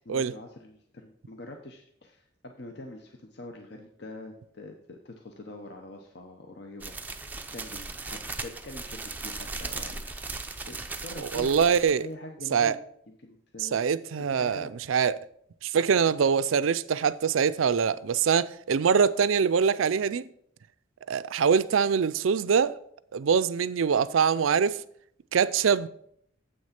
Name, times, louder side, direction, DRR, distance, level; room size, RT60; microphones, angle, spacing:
voice 1, 0.0-7.3 7.5-10.3 10.6-11.5 12.0-12.8 13.1-13.8 14.3-14.7, left 2 dB, 55° left, 0.8 m, -44 dB
sound 1, 6.8-12.0, right 3 dB, 10° right, 0.4 m, -37 dB
voice 2, 11.3-12.0 12.5-12.8 13.6-15.2 15.6-20.2 21.1-22.8 23.1-24.8 25.3-25.9, right 6 dB, 85° right, 0.4 m, -24 dB
7.9 x 6.3 x 5.8 m
head